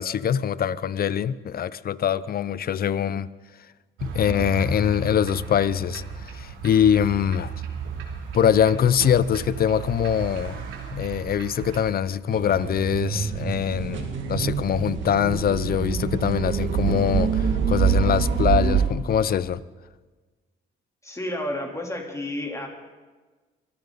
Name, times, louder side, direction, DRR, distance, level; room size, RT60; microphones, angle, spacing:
voice 1, 0.0-3.3 4.0-7.5 8.3-10.6 10.9-19.6, left 9 dB, 50° left, 0.6 m, -23 dB
sound 1, 4.0-11.8, right 5 dB, 90° right, 2.8 m, -35 dB
sound 2, 12.3-18.9, right 7 dB, 75° right, 2.2 m, -25 dB
voice 2, 21.0-22.7, left 1 dB, 15° left, 3.6 m, -31 dB
24.0 x 14.5 x 4.1 m
cardioid pair, 90°, 20 cm